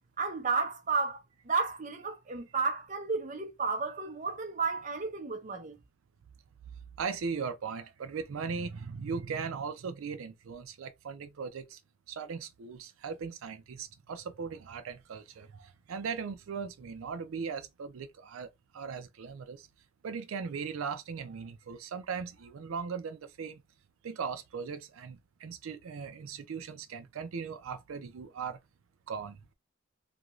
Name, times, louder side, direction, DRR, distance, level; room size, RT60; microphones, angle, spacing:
voice 1, 0.2-5.8, right 4 dB, 40° right, 0.6 m, -32 dB
voice 2, 7.0-11.8 12.1-18.5 18.7-19.6 20.0-23.6 24.0-28.6 29.1-29.4, right 5 dB, 85° right, 0.4 m, -38 dB
2.5 x 2.2 x 3.0 m
head